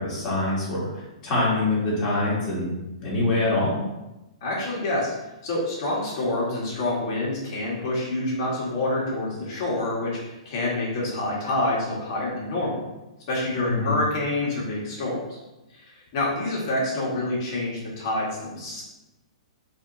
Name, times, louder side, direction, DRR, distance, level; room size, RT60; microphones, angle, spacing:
voice 1, 0.0-2.7 3.0-3.8 13.7-14.0, left 2 dB, 20° left, -7 dB, 1.3 m, -24 dB
voice 2, 4.4-5.2 5.4-12.8 13.3-15.4 15.7-18.8, left 2 dB, 40° left, -5 dB, 1.3 m, -27 dB
4.2 x 2.9 x 2.6 m, 1.0 s
hypercardioid pair, 165°, 3 cm